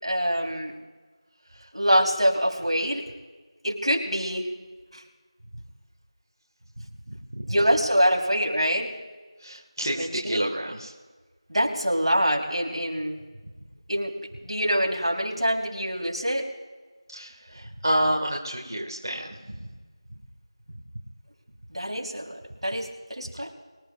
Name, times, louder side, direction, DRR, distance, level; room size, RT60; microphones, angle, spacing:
voice 1, 0.0-0.7 1.7-3.1 3.6-4.5 4.9-5.0 7.5-8.9 9.9-10.5 11.5-13.2 13.9-14.1 14.4-16.4 21.7-23.5, equal, 80° right, 0 dB, 3.7 m, -25 dB
voice 2, 7.1-7.4 9.4-10.9 17.1-19.7, equal, 45° right, -1 dB, 1.9 m, -29 dB
24.5 x 12.5 x 2.5 m, 1.3 s
figure-of-eight pair, 175°, 3 cm